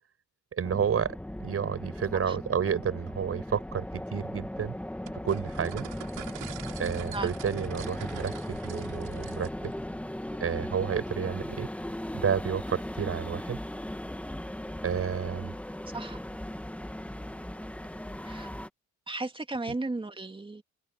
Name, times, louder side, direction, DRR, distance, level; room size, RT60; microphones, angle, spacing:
voice 1, 0.5-1.1 1.4-3.8 4.1-4.7 5.2-5.9 6.8-9.7 10.4-11.7 12.1-13.6 14.8-15.5 19.7-19.8, right 7 dB, 50° right, 5.4 m, -30 dB
sound 1, 0.6-18.7, left 1 dB, 5° left, 2.1 m, -37 dB
sound 2, 5.1-9.7, right 13 dB, 90° right, 6.3 m, -46 dB
voice 2, 19.1-20.6, right 2 dB, 15° right, 2.4 m, -35 dB
open air
cardioid pair, 90°, 30 cm